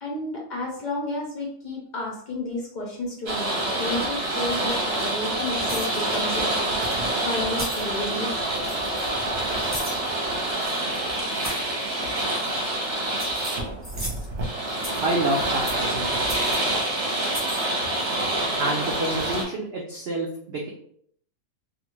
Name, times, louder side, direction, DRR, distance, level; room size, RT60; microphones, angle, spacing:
voice 1, 0.0-6.5 7.2-8.3, left 2 dB, 60° left, -2 dB, 0.5 m, -31 dB
sound 1, 3.3-19.4, right 1 dB, 50° right, 0.9 m, -27 dB
sound 2, 5.6-6.0 6.8-7.0 7.5-7.9 8.6-9.0 9.7-10.0 10.5-10.8 11.3-11.7 12.3-12.7 13.0-14.3 14.7-15.1 15.7-15.9 16.3-16.6 17.2-17.6, equal, 10° right, 1.1 m, -36 dB
voice 2, 15.0-16.7 18.6-20.7, right 1 dB, 75° right, -1 dB, 0.5 m, -28 dB
2.5 x 2.4 x 3.0 m, 0.65 s
omnidirectional pair, 1.6 m